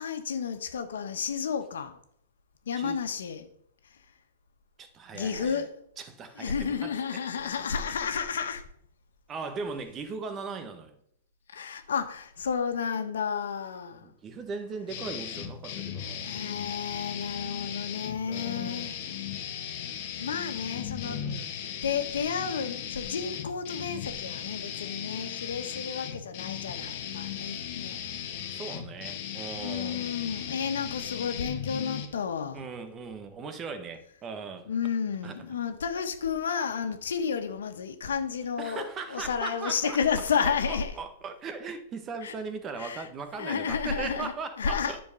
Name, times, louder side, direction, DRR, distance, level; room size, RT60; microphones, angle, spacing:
voice 1, 0.0-2.0 2.7-3.5 5.1-5.8 6.4-8.6 11.5-14.1 16.2-18.9 20.2-21.2 21.6-28.0 28.4-28.5 29.6-32.6 34.7-40.9 42.2-42.3 42.8-43.1 43.4-44.3 44.6-45.0, left 6 dB, 90° left, 1.3 m, -31 dB
voice 2, 2.7-3.0 4.8-5.6 6.0-7.2 9.3-11.0 14.0-16.3 18.3-19.0 20.2-20.5 21.0-21.5 28.5-30.1 32.5-34.7 35.2-35.4 38.6-40.0 40.4-45.0, right 4 dB, 20° right, 1.3 m, -39 dB
sound 1, 14.9-32.1, left 9 dB, 45° left, 1.6 m, -37 dB
10.5 x 4.6 x 7.0 m
hypercardioid pair, 145°, 0 cm